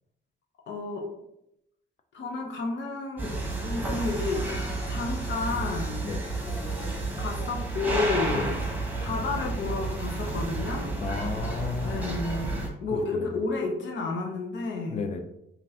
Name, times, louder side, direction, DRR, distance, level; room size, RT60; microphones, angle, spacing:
voice 1, 0.7-1.1 2.1-4.4 4.9-6.1 7.2-8.5 9.0-10.9 11.8-15.0, left 3 dB, 65° left, 1 dB, 0.9 m, -31 dB
sound 1, 3.2-12.7, right 2 dB, 10° right, 1.1 m, -31 dB
voice 2, 8.3-8.6 11.0-12.2 12.9-13.3 14.9-15.2, left 5 dB, 35° left, 6 dB, 0.5 m, -33 dB
5.1 x 2.6 x 2.8 m, 0.83 s
cardioid pair, 90°, 20 cm